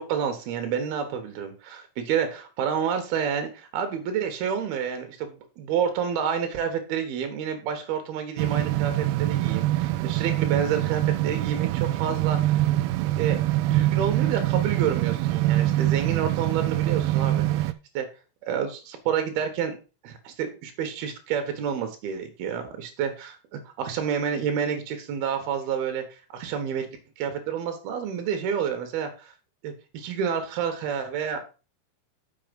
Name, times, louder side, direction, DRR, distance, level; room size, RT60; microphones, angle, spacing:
voice 1, 0.0-12.6 13.2-18.1 18.4-19.8 20.0-26.0 26.3-26.9 27.2-29.3 29.6-31.4, right 7 dB, 65° right, 7 dB, 3.3 m, -29 dB
sound 1, 8.4-17.7, right 15 dB, 80° right, 2.3 m, -24 dB
7.5 x 6.3 x 5.3 m, 0.33 s
omnidirectional pair, 5.0 m